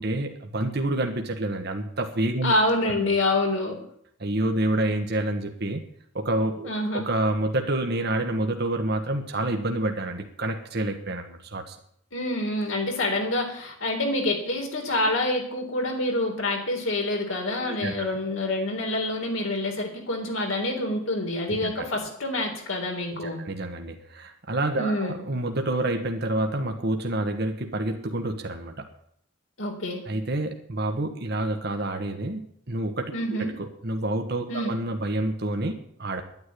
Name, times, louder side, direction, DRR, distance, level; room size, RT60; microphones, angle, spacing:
voice 1, 0.0-2.5 2.8-3.1 4.2-5.8 6.1-11.8 17.6-18.1 21.5-21.8 23.2-28.9 30.1-36.2, right 1 dB, 55° right, 5 dB, 1.4 m, -28 dB
voice 2, 2.4-3.8 6.6-7.1 12.1-23.4 24.7-25.2 29.6-30.0 33.1-33.5 34.5-34.7, left 1 dB, 75° left, 1 dB, 3.9 m, -27 dB
11.0 x 9.6 x 9.7 m, 0.69 s
head